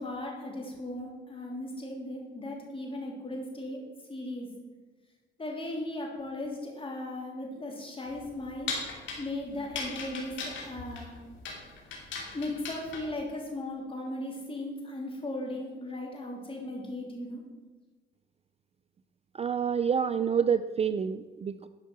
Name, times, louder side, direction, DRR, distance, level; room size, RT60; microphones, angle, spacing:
voice 1, 0.0-3.8 4.1-4.5 5.4-11.1 12.3-17.4, left 1 dB, 25° left, 0 dB, 3.0 m, -37 dB
sound 1, 8.0-13.2, left 4 dB, 70° left, 2.9 m, -38 dB
voice 2, 19.3-21.7, right 7 dB, 30° right, 12 dB, 0.4 m, -28 dB
11.5 x 5.5 x 6.1 m, 1.3 s
cardioid pair, 90°, 20 cm